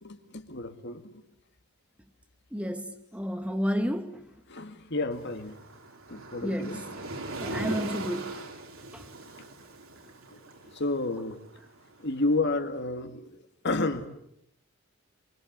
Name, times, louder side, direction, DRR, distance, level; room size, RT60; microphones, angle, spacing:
voice 1, 0.0-1.0 4.5-5.5 6.1-6.8 7.5-7.6 10.3-10.4 10.7-11.4 12.0-13.3 13.6-14.1, left 2 dB, 50° left, 2.2 m, -30 dB
voice 2, 2.5-4.3 6.4-6.9 7.4-8.4 8.9-9.0, equal, 5° right, 1.1 m, -31 dB
Waves surf, 5.1-12.2, right 2 dB, 70° right, 3.5 m, -40 dB
25.5 x 24.0 x 8.2 m
head